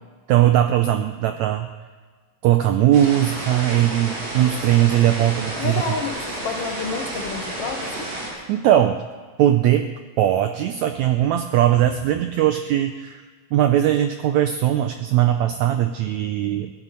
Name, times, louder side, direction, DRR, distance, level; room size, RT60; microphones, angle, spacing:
voice 1, 0.3-1.7 2.4-5.8 8.3-9.0 9.4-13.2 13.5-16.7, right 12 dB, 85° right, 8 dB, 1.6 m, -19 dB
sound 1, 2.9-8.3, right 2 dB, 70° right, 5.0 m, -31 dB
voice 2, 5.6-8.1, left 5 dB, 85° left, 2 dB, 1.3 m, -29 dB
17.5 x 13.0 x 5.5 m, 1.4 s
omnidirectional pair, 4.0 m